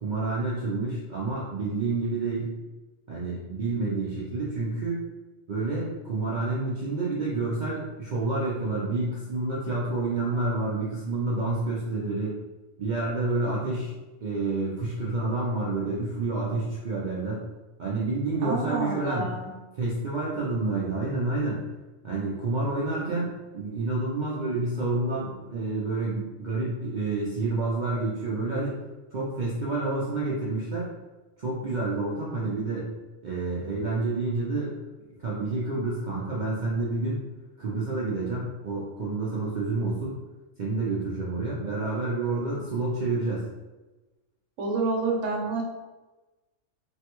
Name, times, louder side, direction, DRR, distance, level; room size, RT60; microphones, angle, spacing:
voice 1, 0.0-2.5 3.1-5.1 5.5-12.3 12.8-13.9 14.2-17.4 17.8-19.3 19.8-21.6 22.0-28.8 29.1-30.9 31.4-32.9 33.2-34.8 35.2-37.2 37.6-40.2 40.6-43.5, right 3 dB, 55° right, -6 dB, 0.5 m, -29 dB
voice 2, 18.4-19.5 44.6-45.6, right 3 dB, 75° right, -1 dB, 1.0 m, -28 dB
3.3 x 2.2 x 2.9 m, 1.1 s
omnidirectional pair, 1.3 m